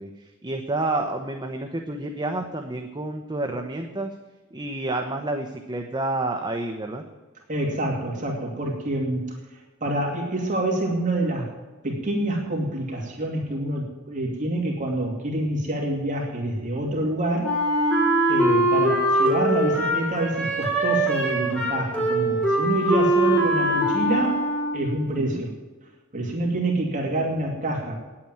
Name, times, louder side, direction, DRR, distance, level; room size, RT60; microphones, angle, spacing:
voice 1, 0.0-4.1 4.5-7.0 25.2-25.4, right 2 dB, 20° right, 4 dB, 0.9 m, -29 dB
voice 2, 7.5-9.3 9.8-11.5 11.8-17.5 18.3-24.5 24.7-25.5 26.1-28.0, right 1 dB, 35° right, -1 dB, 2.5 m, -27 dB
Wind instrument woodwind instrument, 17.4-25.0, right 1 dB, 5° left, 3.8 m, -22 dB
10.0 x 8.8 x 9.2 m, 1.3 s
head